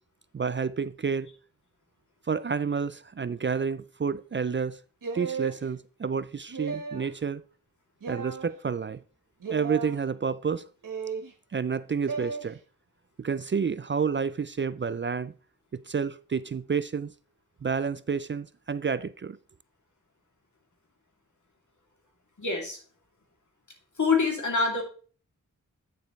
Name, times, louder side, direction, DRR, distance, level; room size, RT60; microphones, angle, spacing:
voice 1, 0.3-1.3 2.3-4.8 5.1-7.4 8.1-9.0 9.5-10.7 11.5-12.6 13.2-15.3 15.7-17.1 17.6-19.4, right 6 dB, 35° right, 0.4 m, -29 dB
sound 1, 5.0-5.6 6.5-7.1 8.0-8.5 9.4-9.9 10.8-11.3 12.1-12.4, right 5 dB, 90° right, 1.3 m, -34 dB
voice 2, 22.4-22.8 24.0-24.8, left 4 dB, 65° left, 2.8 m, -25 dB
9.3 x 6.9 x 3.2 m
cardioid pair, 45°, 32 cm